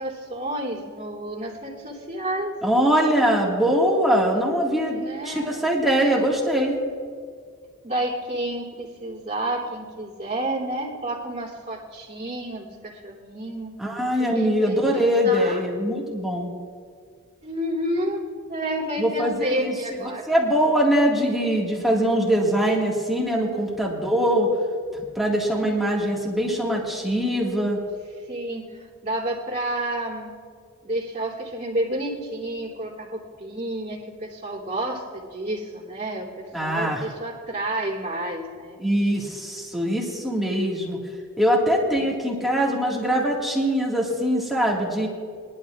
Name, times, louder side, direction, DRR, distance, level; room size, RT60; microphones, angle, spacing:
voice 1, 0.0-2.5 4.9-5.7 7.8-13.7 14.3-15.6 17.4-20.3 25.6-25.7 28.3-30.3 30.8-38.8 41.6-41.8, right 1 dB, 35° right, -6 dB, 3.0 m, -30 dB
voice 2, 2.6-6.8 13.8-16.5 19.0-19.7 20.3-24.5 25.2-27.8 36.5-37.0 38.8-41.0 41.4-45.1, equal, ahead, -3 dB, 2.0 m, -22 dB
22.0 x 12.0 x 2.5 m, 2.1 s
head